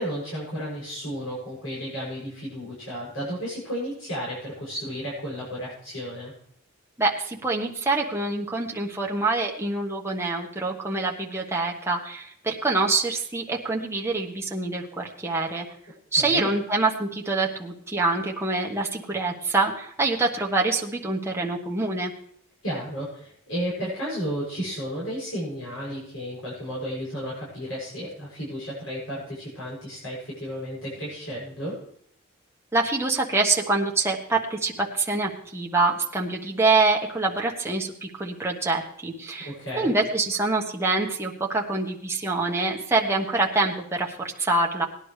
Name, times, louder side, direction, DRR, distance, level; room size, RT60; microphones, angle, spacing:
voice 1, 0.0-6.3 16.1-16.5 22.6-31.8 39.4-39.9, equal, 75° left, -7 dB, 6.9 m, -33 dB
voice 2, 7.0-15.6 16.1-22.1 32.7-44.9, right 3 dB, 10° right, -1 dB, 1.3 m, -25 dB
19.0 x 11.0 x 3.3 m, 0.68 s
head